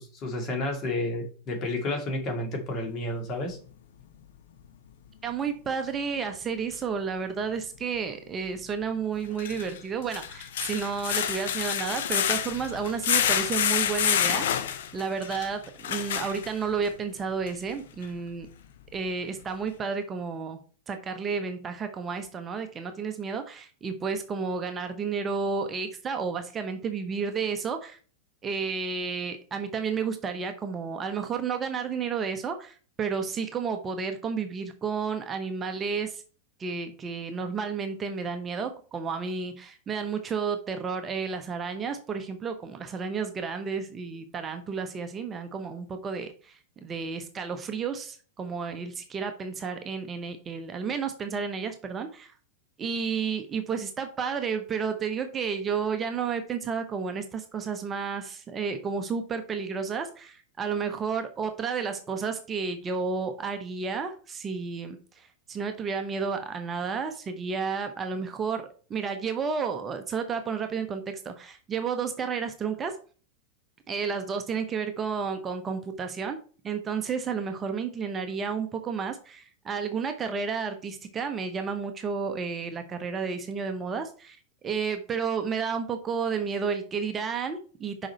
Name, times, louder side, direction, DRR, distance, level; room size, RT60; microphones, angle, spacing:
voice 1, 0.0-3.6, left 1 dB, 35° left, 3 dB, 2.2 m, -31 dB
voice 2, 5.2-14.4 14.7-18.5 18.9-20.6 20.9-28.0 28.4-36.2 36.6-52.3 52.8-68.6 68.9-73.0 73.9-76.4 76.6-88.1, right 5 dB, 20° right, 6 dB, 0.8 m, -31 dB
sound 1, 6.7-6.8 9.2-16.9 17.5-17.6 18.0-18.1, left 9 dB, 60° left, 0.7 m, -28 dB
6.3 x 5.1 x 4.3 m, 0.40 s
figure-of-eight pair, 90°, 0 cm